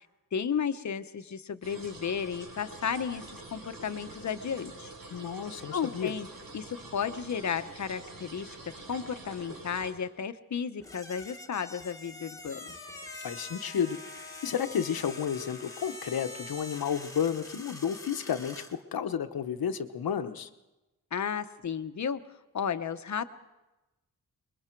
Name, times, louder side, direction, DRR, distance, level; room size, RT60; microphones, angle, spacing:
voice 1, 0.3-3.2 3.5-4.9 5.7-6.3 6.5-8.5 8.9-12.7 21.1-22.2 22.5-23.2, left 7 dB, 55° left, 11 dB, 0.9 m, -33 dB
sound 1, 1.6-9.9, right 2 dB, 75° right, 5.1 m, -46 dB
voice 2, 5.1-6.1 13.2-14.0 14.4-20.5, left 8 dB, 85° left, 8 dB, 1.1 m, -32 dB
sound 2, 10.8-18.8, left 2 dB, 10° left, 1.3 m, -45 dB
Wind instrument woodwind instrument, 12.5-17.2, left 6 dB, 25° left, 1.0 m, -51 dB
26.0 x 22.0 x 4.6 m, 1.0 s
wide cardioid pair, 175°, 35 cm